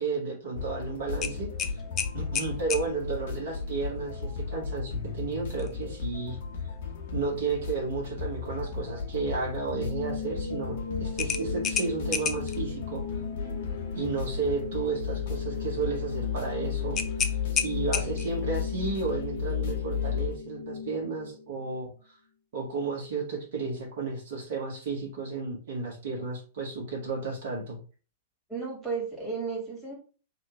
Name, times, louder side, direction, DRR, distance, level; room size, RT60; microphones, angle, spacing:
voice 1, 0.0-1.7 2.1-6.4 7.1-13.0 13.9-17.3 17.5-22.2 22.5-27.8, right 4 dB, 50° right, -2 dB, 1.5 m, -33 dB
sound 1, 0.5-20.3, left 6 dB, 45° left, 1.3 m, -34 dB
sound 2, 1.2-2.9 5.5-5.7 6.2-6.3 11.2-12.6 16.9-18.4, left 7 dB, 25° left, 0.4 m, -31 dB
sound 3, 9.7-21.7, left 5 dB, 80° left, 0.5 m, -38 dB
voice 2, 28.5-29.9, right 4 dB, 5° right, -5 dB, 2.1 m, -33 dB
3.3 x 3.0 x 4.5 m, 0.37 s
figure-of-eight pair, 100°, 0 cm